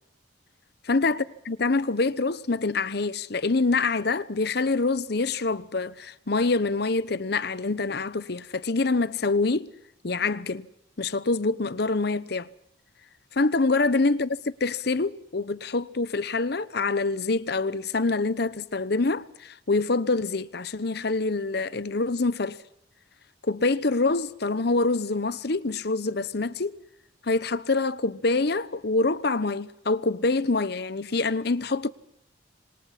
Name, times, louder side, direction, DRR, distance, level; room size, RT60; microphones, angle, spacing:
voice 1, 0.9-9.7 10.0-10.7 11.0-12.5 13.3-22.6 23.4-26.8 27.2-31.9, left 3 dB, 55° left, 0.9 m, -26 dB
27.5 x 25.5 x 5.8 m
head